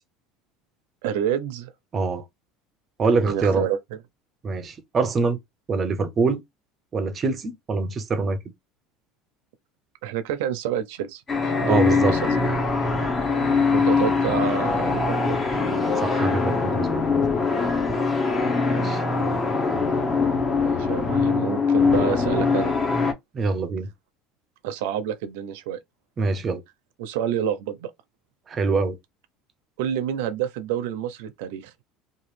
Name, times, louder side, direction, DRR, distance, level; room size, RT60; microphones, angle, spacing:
voice 1, 1.0-1.7 3.2-3.8 10.0-11.2 11.6-12.3 13.7-15.4 17.9-18.1 20.6-22.7 24.6-25.8 27.0-27.9 29.8-31.7, right 9 dB, 85° right, 0.6 m, -28 dB
voice 2, 1.9-2.2 3.0-3.7 4.4-5.4 5.7-6.4 6.9-8.4 11.6-12.1 16.0-17.0 18.7-19.0 23.3-23.9 26.2-26.6 28.5-29.0, right 4 dB, 25° right, 0.5 m, -24 dB
sound 1, 11.3-23.1, left 4 dB, 20° left, 0.7 m, -22 dB
2.9 x 2.4 x 3.1 m
cardioid pair, 160°, 0 cm